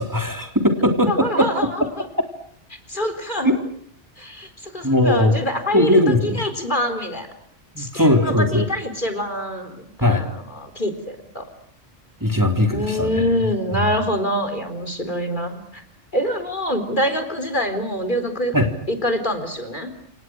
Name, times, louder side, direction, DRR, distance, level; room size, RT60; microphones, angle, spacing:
voice 1, 0.0-1.7 3.4-3.6 4.8-5.4 5.7-6.4 7.8-8.6 10.0-10.2 12.2-13.1 13.7-13.9 18.5-18.7, left 1 dB, 15° right, 4 dB, 3.8 m, -19 dB
voice 2, 1.1-2.1 2.9-3.5 4.2-7.3 7.8-11.5 12.7-15.8 16.1-18.5 18.9-19.9, equal, 45° left, 8 dB, 4.2 m, -25 dB
29.0 x 28.0 x 6.3 m, 0.65 s
omnidirectional pair, 1.2 m